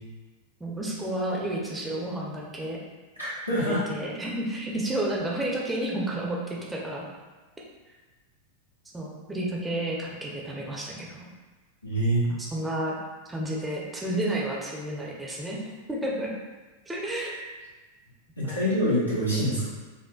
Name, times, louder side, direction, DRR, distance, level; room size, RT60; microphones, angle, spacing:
voice 1, 0.6-2.8 3.6-7.1 8.9-11.3 12.3-12.9 13.2-15.6 15.9-16.3 16.9-17.4 18.4-18.7, right 1 dB, 10° right, -3 dB, 0.7 m, -31 dB
voice 2, 3.2-3.8 11.8-12.2 18.4-19.7, equal, 90° left, -10 dB, 1.5 m, -25 dB
5.6 x 2.4 x 2.4 m, 1.3 s
figure-of-eight pair, 90°, 0 cm